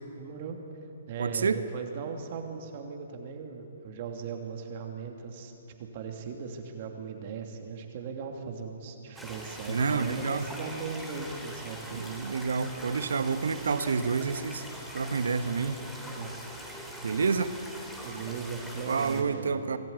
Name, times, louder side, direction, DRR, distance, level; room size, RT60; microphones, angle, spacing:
voice 1, 0.2-0.6 1.1-5.5 5.8-12.1 16.0-16.3 18.0-19.8, right 5 dB, 45° right, 3 dB, 2.9 m, -38 dB
voice 2, 1.2-1.6 9.7-10.5 11.9-14.6 14.9-15.8 17.0-17.5 18.9-19.8, right 5 dB, 75° right, 11 dB, 1.3 m, -28 dB
sound 1, 9.1-19.2, equal, ahead, 3.2 m, -43 dB
25.0 x 14.0 x 9.6 m, 2.8 s
hypercardioid pair, 130°, 0 cm